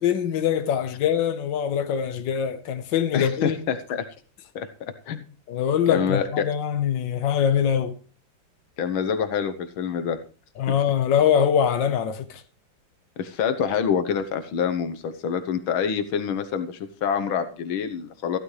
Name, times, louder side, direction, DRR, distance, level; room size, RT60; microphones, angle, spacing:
voice 1, 0.0-3.6 5.5-7.9 10.6-12.4, left 8 dB, 65° left, 1.7 m, -23 dB
voice 2, 3.1-4.1 4.6-5.2 5.9-6.5 8.8-10.2 10.7-10.8 13.2-18.4, left 7 dB, 85° left, 1.8 m, -26 dB
15.0 x 12.5 x 3.2 m
omnidirectional pair, 2.2 m